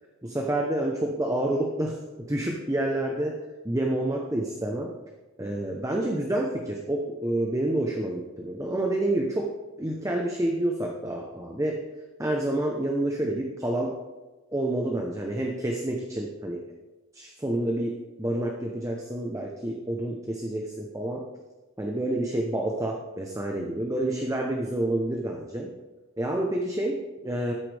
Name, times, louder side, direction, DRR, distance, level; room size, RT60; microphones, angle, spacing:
voice 1, 0.2-3.4 3.6-4.9 5.4-11.8 12.2-14.0 14.5-16.6 17.1-21.2 21.8-25.7 26.2-27.5, right 1 dB, 15° right, 1 dB, 0.8 m, -28 dB
13.0 x 9.7 x 3.4 m, 1.2 s
head